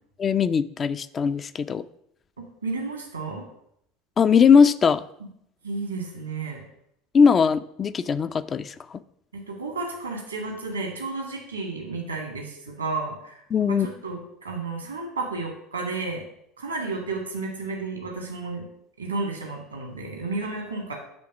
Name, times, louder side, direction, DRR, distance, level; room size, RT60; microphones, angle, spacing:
voice 1, 0.2-1.8 4.2-5.0 7.1-8.7 13.5-13.9, left 6 dB, 30° left, 12 dB, 0.4 m, -19 dB
voice 2, 2.4-3.4 5.6-6.6 9.3-16.2 16.6-18.7 19.0-20.9, right 3 dB, 85° right, 1 dB, 1.8 m, -32 dB
7.6 x 3.4 x 6.0 m, 0.72 s
figure-of-eight pair, 70°, 0 cm